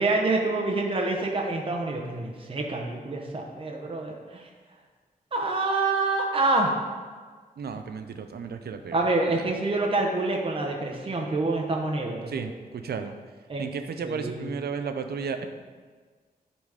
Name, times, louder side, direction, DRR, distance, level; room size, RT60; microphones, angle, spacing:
voice 1, 0.0-4.4 5.3-6.7 8.9-12.5 13.5-13.6 14.0-14.5, right 2 dB, 35° right, 1 dB, 0.9 m, -27 dB
voice 2, 7.6-9.0 9.3-9.5 12.3-13.2 13.6-15.4, right 6 dB, 85° right, 7 dB, 0.6 m, -33 dB
10.5 x 4.1 x 4.8 m, 1.5 s
wide cardioid pair, 165°, 16 cm